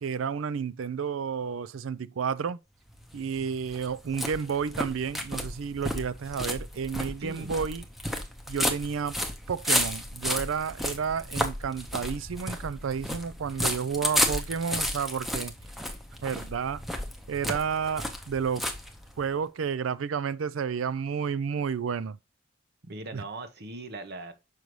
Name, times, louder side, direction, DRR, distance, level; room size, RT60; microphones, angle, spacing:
voice 1, 0.0-2.6 3.1-7.8 8.5-9.2 9.5-15.5 16.2-16.8 17.3-18.6 19.2-22.2 23.1-23.2, right 6 dB, 85° right, 0.4 m, -31 dB
sound 1, 2.9-19.4, left 1 dB, ahead, 0.7 m, -33 dB
voice 2, 7.2-7.5 22.9-24.3, right 2 dB, 55° right, 1.0 m, -39 dB
6.3 x 5.3 x 3.1 m
head